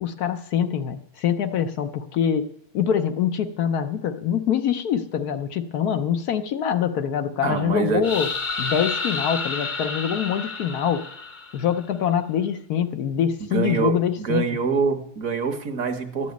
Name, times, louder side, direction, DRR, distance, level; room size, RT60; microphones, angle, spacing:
voice 1, 0.0-2.5 2.7-8.3 8.6-11.0 11.5-14.4, left 8 dB, 70° left, 8 dB, 1.2 m, -24 dB
voice 2, 7.4-8.0 13.5-16.3, right 5 dB, 60° right, 6 dB, 1.5 m, -25 dB
sound 1, 8.0-11.8, left 4 dB, 35° left, 0.9 m, -30 dB
12.5 x 6.2 x 9.3 m, 0.68 s
omnidirectional pair, 1.8 m